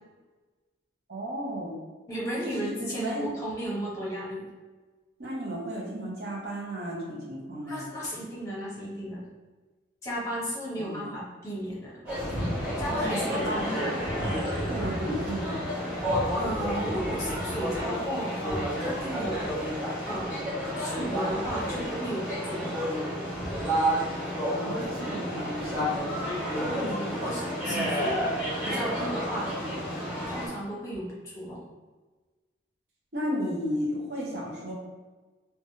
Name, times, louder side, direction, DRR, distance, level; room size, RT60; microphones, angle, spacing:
voice 1, 1.1-1.7 2.6-3.3 5.2-7.9 10.8-11.1 12.9-13.8 14.7-15.7 24.5-26.2 26.6-27.1 27.7-28.0 33.1-34.7, equal, 55° right, -5 dB, 0.7 m, -34 dB
voice 2, 2.1-4.5 7.6-9.3 10.0-12.0 12.8-14.4 16.3-19.5 20.0-20.3 20.8-22.8 26.7-28.3 28.6-29.5 30.3-31.6, equal, 15° left, -6 dB, 0.9 m, -34 dB
sound 1, 12.1-30.5, equal, 10° right, 1.4 m, -30 dB
3.1 x 2.2 x 2.7 m, 1.3 s
head